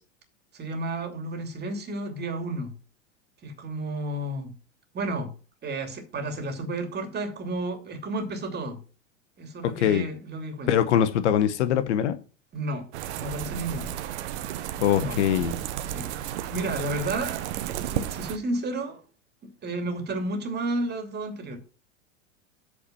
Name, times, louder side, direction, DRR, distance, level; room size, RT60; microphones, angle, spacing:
voice 1, 0.5-2.7 3.4-4.5 4.9-5.3 5.6-8.8 9.4-10.7 12.5-12.8 13.2-13.9 15.0-15.2 15.9-19.0 19.4-21.6, right 2 dB, 25° right, 2.6 m, -32 dB
voice 2, 9.6-10.1 10.7-12.2 14.8-15.5, left 10 dB, 65° left, 1.0 m, -22 dB
sound 1, 12.9-18.4, right 11 dB, 60° right, 1.0 m, -33 dB
8.5 x 4.4 x 6.9 m
hypercardioid pair, 95°, 38 cm